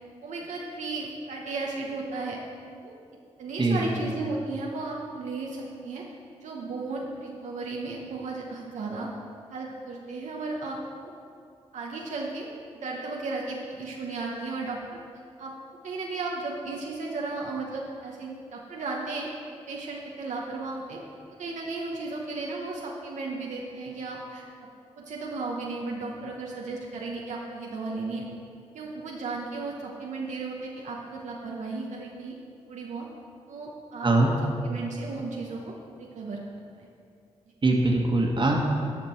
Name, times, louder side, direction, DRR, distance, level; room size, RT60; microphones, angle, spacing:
voice 1, 0.2-2.4 2.8-2.9 3.4-6.0 6.4-9.1 9.5-11.1 11.7-12.5 12.8-15.0 15.4-15.5 15.8-19.3 19.7-21.0 21.4-24.4 25.0-28.3 28.7-32.3 32.7-33.1 33.5-35.7 36.0-36.9, right 3 dB, 80° right, -2 dB, 1.0 m, -35 dB
voice 2, 3.6-3.9 34.0-34.3 37.6-38.6, right 2 dB, 40° right, 0 dB, 1.5 m, -22 dB
13.5 x 5.2 x 4.5 m, 2.4 s
cardioid pair, 55°, 12 cm